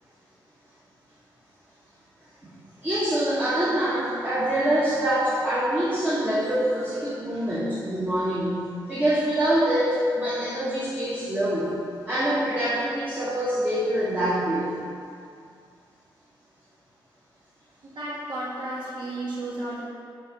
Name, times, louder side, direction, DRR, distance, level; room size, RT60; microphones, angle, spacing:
voice 1, 2.8-8.6 8.9-11.7 12.1-14.7, right 1 dB, 20° right, -9 dB, 1.2 m, -25 dB
voice 2, 17.9-19.8, right 1 dB, 60° right, -8 dB, 1.4 m, -33 dB
6.6 x 3.3 x 5.9 m, 2.3 s
wide cardioid pair, 105°, 9 cm